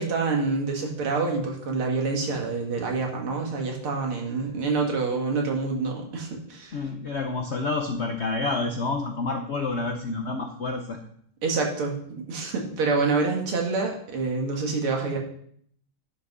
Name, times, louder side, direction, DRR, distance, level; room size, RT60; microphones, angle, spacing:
voice 1, 0.0-6.8 11.4-15.2, right 4 dB, 80° right, 1 dB, 2.7 m, -27 dB
voice 2, 6.7-11.0, left 3 dB, 80° left, 4 dB, 0.6 m, -28 dB
10.0 x 6.1 x 5.4 m, 0.64 s
omnidirectional pair, 2.3 m